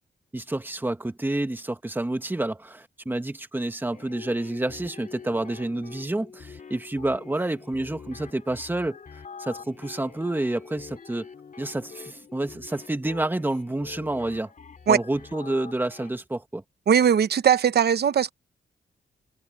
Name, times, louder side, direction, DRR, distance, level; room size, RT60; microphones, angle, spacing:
voice 1, 0.3-9.0 9.4-11.3 11.6-14.5 14.9-16.6, right 2 dB, 10° right, 1.6 m, -29 dB
sound 1, 3.9-16.1, left 5 dB, 45° left, 2.7 m, -45 dB
voice 2, 16.9-18.3, right 8 dB, 60° right, 0.9 m, -19 dB
wide cardioid pair, 130°, 18 cm